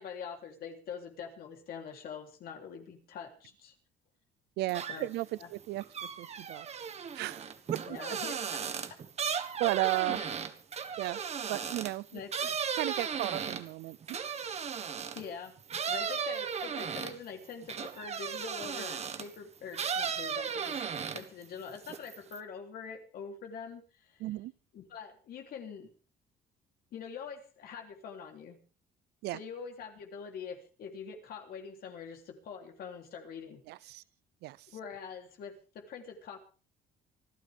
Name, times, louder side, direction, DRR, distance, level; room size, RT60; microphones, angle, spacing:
voice 1, 0.0-3.7 4.9-5.1 5.4-5.5 7.8-8.6 10.1-10.3 12.1-12.5 15.1-15.6 15.9-20.8 21.1-24.3 24.7-25.9 26.9-28.6 29.3-33.9 34.7-36.4, left 6 dB, 65° left, 3.4 m, -44 dB
voice 2, 4.6-5.8 6.2-6.7 7.1-7.4 7.7-7.8 9.6-10.2 11.0-11.2 11.5-12.2 12.8-14.2 24.2-24.5 29.2-29.4 33.7-34.0 34.4-34.6, right 17 dB, 80° right, 0.6 m, -34 dB
sound 1, 4.7-5.2 5.6-15.3 15.7-19.3 19.7-21.4 21.7-22.4, right 7 dB, 40° right, 1.5 m, -36 dB
25.5 x 12.0 x 3.6 m
cardioid pair, 110°, 17 cm